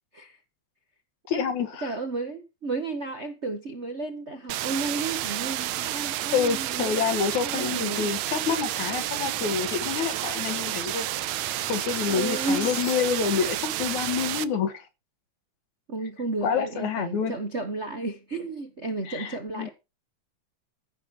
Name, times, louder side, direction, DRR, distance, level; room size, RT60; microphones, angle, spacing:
voice 1, 1.3-1.9 5.9-11.1 11.7-14.9 16.4-17.4 19.1-19.7, left 6 dB, 80° left, 3.1 m, -28 dB
voice 2, 1.8-7.0 7.4-8.1 12.1-12.7 15.9-19.7, right 3 dB, 45° right, 0.8 m, -33 dB
sound 1, 4.5-14.4, right 14 dB, 80° right, 2.1 m, -30 dB
sound 2, 8.3-13.4, left 10 dB, 65° left, 2.1 m, -46 dB
15.0 x 6.4 x 6.0 m
omnidirectional pair, 3.3 m